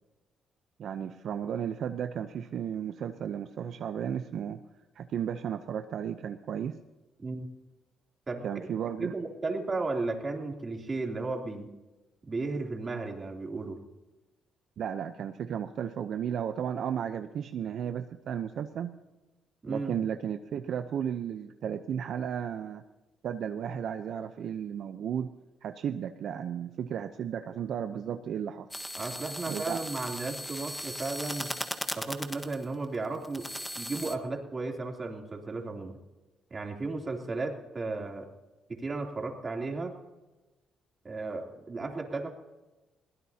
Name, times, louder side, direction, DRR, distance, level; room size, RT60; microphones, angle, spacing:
voice 1, 0.8-4.6 4.9-6.8 8.4-9.1 14.8-18.9 19.7-22.8 23.2-25.3 25.6-28.7 29.5-29.8, right 8 dB, 65° right, 9 dB, 0.7 m, -34 dB
voice 2, 7.2-7.5 8.3-8.7 9.0-11.7 12.2-13.8 19.6-19.9 29.0-31.5 32.0-33.5 33.8-36.0 36.5-38.3 38.7-39.9 41.0-42.3, right 3 dB, 30° right, 1 dB, 3.1 m, -34 dB
sound 1, 28.7-34.2, left 1 dB, 10° left, 1.4 m, -38 dB
21.5 x 16.5 x 2.8 m, 1.1 s
cardioid pair, 90°, 0 cm